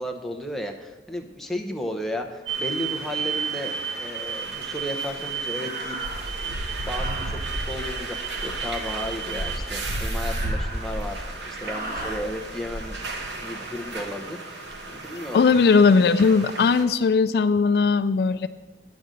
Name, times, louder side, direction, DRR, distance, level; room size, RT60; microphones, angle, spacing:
voice 1, 0.0-6.5 6.8-8.2 8.4-13.0 13.4-14.7 14.9-15.6, left 1 dB, ahead, 3 dB, 0.8 m, -34 dB
sound 1, 2.4-2.6 3.3-3.8 5.5-6.4 6.9-7.5 9.7-11.1 11.6-12.3, right 2 dB, 50° right, 1.4 m, -37 dB
sound 2, 2.5-16.8, right 3 dB, 90° right, 1.2 m, -32 dB
voice 2, 15.3-18.5, left 4 dB, 65° left, 12 dB, 0.3 m, -18 dB
9.6 x 5.3 x 7.5 m, 1.2 s
head